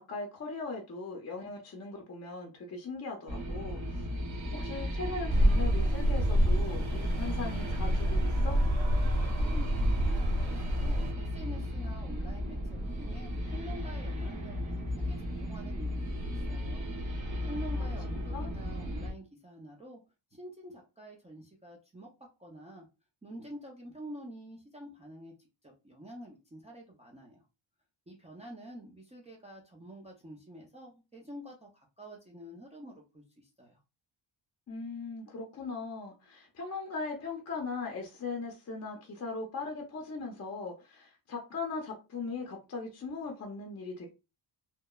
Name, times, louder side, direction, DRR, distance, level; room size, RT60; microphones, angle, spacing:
voice 1, 0.0-4.1 4.5-8.6 17.8-17.9 18.3-18.5 34.7-44.1, left 3 dB, 35° left, 0.6 m, -39 dB
sound 1, 3.3-19.1, equal, 40° right, 1.0 m, -36 dB
sound 2, 5.3-11.1, equal, 75° right, 0.7 m, -27 dB
voice 2, 9.2-16.9 17.4-20.0 20.3-22.1 22.4-22.9 23.2-27.4 28.1-33.8, equal, 15° right, 0.5 m, -48 dB
2.8 x 2.1 x 2.2 m
cardioid pair, 120°, 47 cm